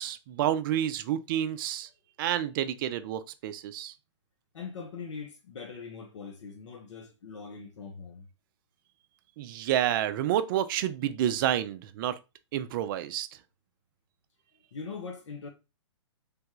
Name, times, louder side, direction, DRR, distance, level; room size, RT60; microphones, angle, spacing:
voice 1, 0.0-1.9 2.2-3.9 9.4-12.2 12.5-13.3, right 11 dB, 45° right, 0.4 m, -29 dB
voice 2, 4.5-8.3 14.7-15.5, left 5 dB, 75° left, 0.7 m, -41 dB
3.4 x 2.3 x 3.0 m
hypercardioid pair, 130°, 16 cm